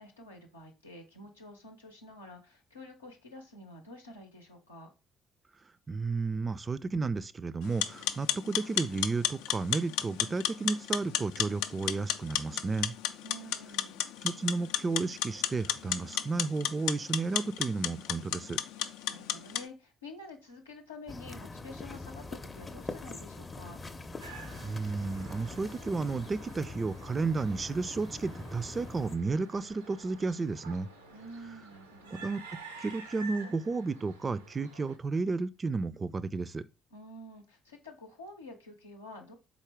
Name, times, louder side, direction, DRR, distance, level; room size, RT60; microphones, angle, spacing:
voice 1, 0.0-4.9 13.2-14.0 19.1-23.8 31.1-32.3 36.9-39.3, left 1 dB, 85° left, 0.7 m, -48 dB
voice 2, 5.9-12.9 14.2-18.6 24.6-30.9 32.1-36.6, right 3 dB, 30° right, 0.3 m, -32 dB
sound 1, 7.6-19.7, left 10 dB, 70° left, 0.3 m, -33 dB
sound 2, 21.1-29.2, left 3 dB, 25° left, 0.6 m, -43 dB
sound 3, 24.2-35.0, right 3 dB, 85° right, 0.5 m, -50 dB
4.1 x 3.6 x 3.5 m
figure-of-eight pair, 45°, 0 cm